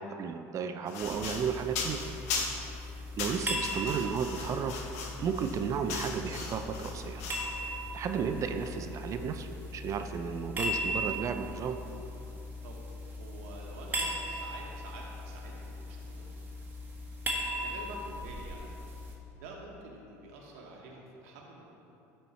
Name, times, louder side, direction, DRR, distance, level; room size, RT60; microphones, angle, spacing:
voice 1, 0.0-2.0 3.2-4.8 5.2-7.2 7.9-11.8, right 6 dB, 45° right, 7 dB, 0.4 m, -33 dB
sound 1, 0.9-2.7 3.2-7.6, left 4 dB, 90° left, 1.0 m, -38 dB
sound 2, 1.0-19.2, equal, 25° right, 1.4 m, -38 dB
voice 2, 2.3-2.7 12.6-12.8 13.1-16.3 17.5-18.6 19.4-21.6, right 3 dB, 85° right, -1 dB, 1.1 m, -48 dB
sound 3, 3.2-9.4, left 1 dB, 30° left, 1.8 m, -52 dB
11.5 x 4.5 x 4.2 m, 2.9 s
supercardioid pair, 105°, 8 cm